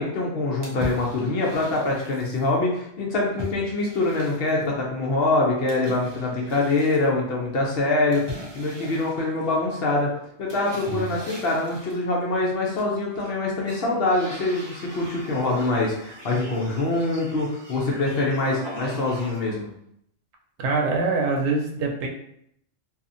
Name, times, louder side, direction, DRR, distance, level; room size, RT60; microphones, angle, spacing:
voice 1, 0.0-10.1 10.4-19.7, left 2 dB, 60° left, -3 dB, 0.8 m, -24 dB
sound 1, 0.6-2.4 3.4-4.7 5.7-7.1 8.1-9.8 10.5-12.0 12.6-13.3 13.6-19.6, equal, 40° right, 0.4 m, -40 dB
voice 2, 20.6-22.1, right 3 dB, 75° right, 0 dB, 0.9 m, -24 dB
2.7 x 2.4 x 2.5 m, 0.72 s
omnidirectional pair, 1.3 m